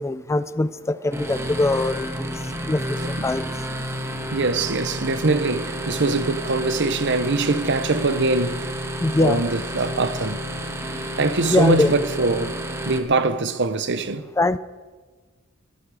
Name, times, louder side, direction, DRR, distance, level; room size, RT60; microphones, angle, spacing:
voice 1, 0.0-2.3 2.7-3.0 3.2-3.4 9.0-9.4 11.5-11.9 14.4-14.6, left 2 dB, 15° left, 0.4 m, -22 dB
sound 1, 1.1-13.0, equal, 15° right, 1.4 m, -30 dB
voice 2, 3.0-3.3 4.3-8.7 9.2-10.4 11.2-12.6 12.9-14.2, right 3 dB, 55° right, 0.9 m, -23 dB
21.0 x 14.0 x 4.9 m
head